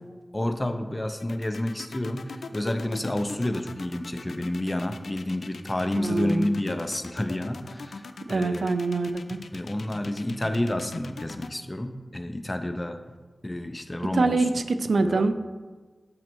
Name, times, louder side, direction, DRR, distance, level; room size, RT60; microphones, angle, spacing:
voice 1, 0.3-8.0 8.3-8.7 9.5-13.0 13.4-14.4 15.0-15.3, left 1 dB, 25° left, 8 dB, 0.5 m, -29 dB
sound 1, 1.2-11.5, left 4 dB, 85° left, 0.3 m, -41 dB
voice 2, 6.0-6.5 8.2-9.4 14.1-15.3, right 3 dB, 80° right, 9 dB, 0.3 m, -25 dB
8.5 x 3.1 x 4.5 m, 1.4 s
wide cardioid pair, 70°, 0 cm